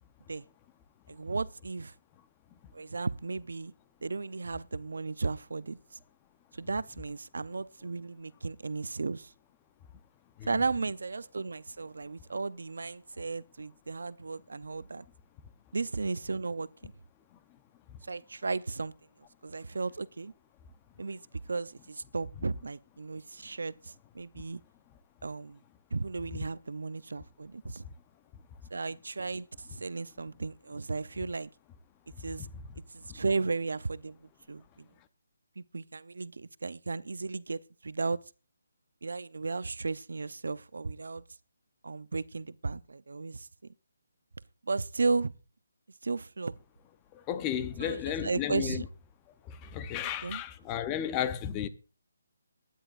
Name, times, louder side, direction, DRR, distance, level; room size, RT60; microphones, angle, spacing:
voice 1, 1.1-1.9 2.7-3.7 4.0-6.0 6.5-9.3 10.4-15.0 15.7-16.9 18.1-18.9 19.4-20.3 21.0-21.2 21.5-24.6 25.2-25.6 25.9-27.8 28.7-31.5 32.2-32.5 32.9-34.9 35.6-38.2 39.0-41.2 41.8-43.5 44.6-45.3 46.0-46.6 47.8-48.8 50.2-50.4, right 3 dB, 80° right, 0.6 m, -35 dB
voice 2, 47.1-48.9 49.4-51.7, left 10 dB, 15° left, 0.8 m, -33 dB
21.5 x 10.0 x 2.5 m
hypercardioid pair, 165°, 0 cm